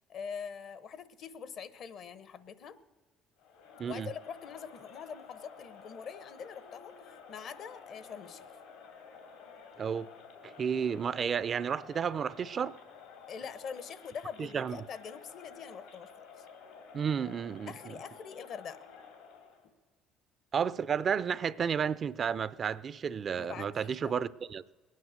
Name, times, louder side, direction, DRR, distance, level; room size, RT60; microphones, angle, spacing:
voice 1, 0.1-2.8 3.8-6.9 7.3-8.5 13.3-16.5 17.7-18.8 23.4-24.1, left 7 dB, 60° left, 0.9 m, -44 dB
Crowd, 3.4-19.7, left 6 dB, 85° left, 2.8 m, -52 dB
voice 2, 9.8-10.1 10.4-12.8 14.4-14.8 16.9-17.9 20.5-24.6, right 7 dB, 45° right, 0.4 m, -32 dB
20.5 x 9.4 x 6.5 m
supercardioid pair, 75°, 0 cm